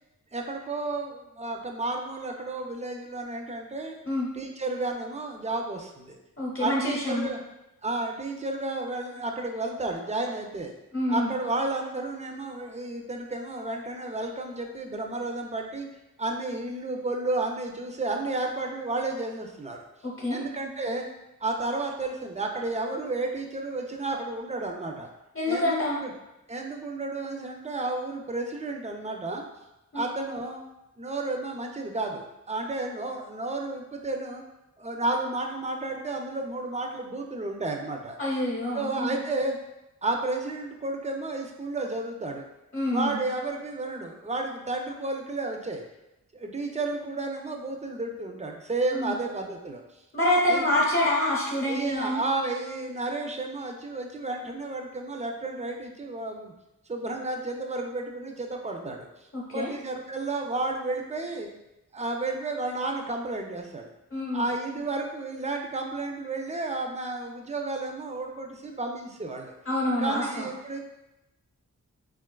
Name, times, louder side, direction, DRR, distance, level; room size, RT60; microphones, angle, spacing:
voice 1, 0.3-4.0 4.3-6.2 6.6-7.4 7.8-10.7 11.1-15.9 16.2-19.8 20.3-21.1 21.4-25.1 25.5-26.1 26.5-29.4 29.9-30.6 31.0-34.4 34.8-38.2 38.7-39.6 40.0-42.5 42.9-45.8 46.3-49.8 50.5-50.6 51.6-56.5 56.9-61.5 61.9-63.9 64.3-69.5 70.0-70.8, right 2 dB, 20° right, 2 dB, 0.4 m, -32 dB
voice 2, 6.4-7.3 10.9-11.3 20.0-20.4 25.3-26.0 29.9-30.0 38.2-39.2 42.7-43.2 48.9-49.1 50.1-52.2 59.3-59.7 64.1-64.4 69.7-70.5, left 1 dB, 40° left, -5 dB, 0.8 m, -26 dB
3.6 x 2.3 x 2.2 m, 0.94 s
cardioid pair, 65°, 33 cm